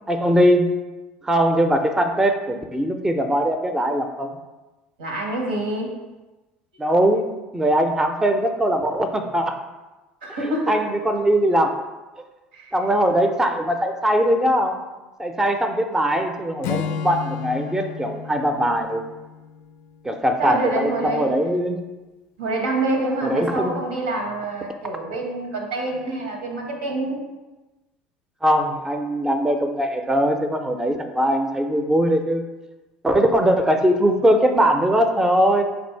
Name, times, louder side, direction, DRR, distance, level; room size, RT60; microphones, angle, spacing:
voice 1, 0.1-0.7 1.2-4.3 6.8-9.5 10.7-11.8 12.7-14.8 15.2-19.0 20.0-21.8 23.2-23.8 28.4-32.4 33.0-35.6, equal, 10° right, 6 dB, 0.5 m, -20 dB
voice 2, 5.0-6.0 10.2-10.9 12.5-12.7 20.4-21.4 22.4-27.2, right 2 dB, 85° right, 1 dB, 1.0 m, -26 dB
Acoustic guitar / Strum, 16.6-20.1, left 7 dB, 60° left, 0.3 m, -32 dB
4.1 x 2.6 x 4.4 m, 1.1 s
hypercardioid pair, 75°, 5 cm